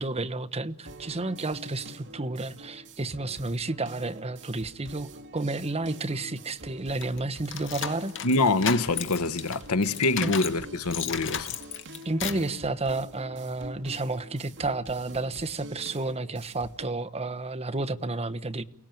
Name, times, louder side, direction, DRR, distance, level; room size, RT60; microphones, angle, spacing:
voice 1, 0.0-8.1 10.2-10.3 12.0-18.6, right 2 dB, 30° right, 1.1 m, -31 dB
sound 1, 0.9-16.9, right 2 dB, 55° right, 2.5 m, -47 dB
sound 2, 7.0-10.6 10.9-12.5, left 8 dB, 55° left, 2.0 m, -34 dB
voice 2, 8.2-11.5, left 3 dB, 75° left, 1.1 m, -25 dB
29.5 x 18.5 x 9.1 m
head